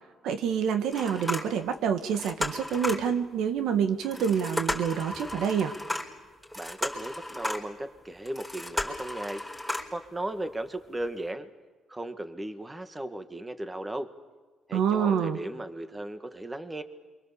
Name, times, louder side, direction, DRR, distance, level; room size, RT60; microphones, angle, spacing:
voice 1, 0.2-5.7 14.7-15.4, right 7 dB, 85° right, 8 dB, 1.6 m, -27 dB
sound 1, 0.9-1.8 2.1-3.1 4.0-7.8 8.3-10.0 10.5-10.6 11.0-11.1, left 1 dB, ahead, 4.5 m, -34 dB
voice 2, 6.6-9.4 9.9-11.5 11.9-14.1 14.7-16.8, right 1 dB, 15° right, 8 dB, 1.9 m, -36 dB
28.0 x 24.5 x 7.2 m, 1.4 s
cardioid pair, 90°, 0 cm